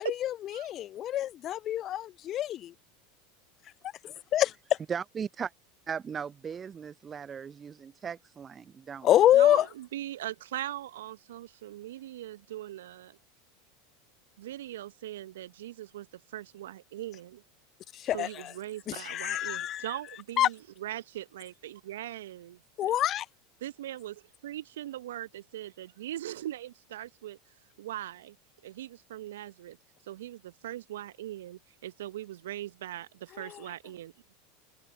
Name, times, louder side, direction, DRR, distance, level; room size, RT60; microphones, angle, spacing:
voice 1, 0.2-2.7 4.3-4.5 9.0-9.7 17.9-18.5 18.9-19.9 20.4-20.5 22.8-23.3 33.4-33.5, left 12 dB, 40° left, 0.8 m, -26 dB
voice 2, 4.9-5.5 5.9-9.1, right 7 dB, 25° right, 0.5 m, -37 dB
voice 3, 9.3-13.2 14.4-16.1 16.3-17.4 18.1-23.0 23.6-27.4 27.8-28.3 28.6-29.8 30.1-34.3, right 13 dB, 70° right, 1.2 m, -40 dB
open air
figure-of-eight pair, 80°, 0 cm